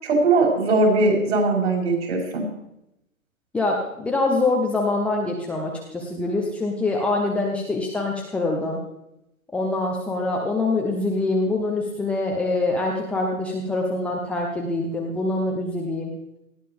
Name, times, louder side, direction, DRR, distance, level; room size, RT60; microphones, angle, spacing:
voice 1, 0.0-2.4, right 3 dB, 55° right, -1 dB, 7.5 m, -20 dB
voice 2, 3.5-8.8 9.5-16.1, left 2 dB, 5° left, -2 dB, 0.8 m, -24 dB
19.5 x 15.5 x 3.5 m, 0.84 s
figure-of-eight pair, 125°, 43 cm